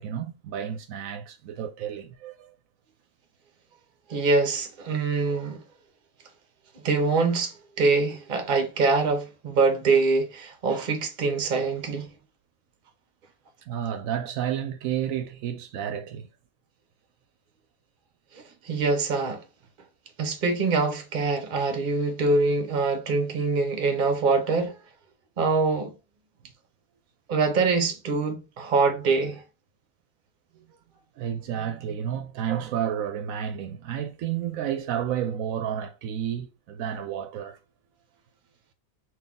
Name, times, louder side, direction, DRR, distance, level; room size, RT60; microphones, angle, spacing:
voice 1, 0.0-2.5 13.7-16.3 18.4-18.5 31.2-37.6, right 9 dB, 75° right, 1.0 m, -31 dB
voice 2, 4.1-5.6 6.7-12.1 18.3-19.4 20.2-24.8 25.4-25.9 27.3-29.4, right 3 dB, 40° right, 0.9 m, -24 dB
4.0 x 2.6 x 3.5 m
omnidirectional pair, 1.5 m